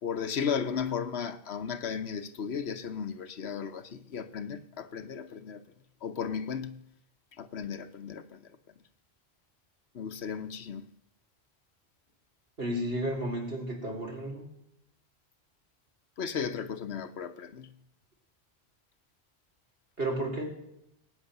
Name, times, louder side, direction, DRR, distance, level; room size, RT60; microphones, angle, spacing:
voice 1, 0.0-5.6 6.0-6.8 7.4-8.5 9.9-10.8 16.2-17.7, left 7 dB, 75° left, 1.2 m, -35 dB
voice 2, 12.6-14.5 20.0-20.4, right 1 dB, 65° right, 3.8 m, -32 dB
19.0 x 9.2 x 6.7 m
omnidirectional pair, 1.1 m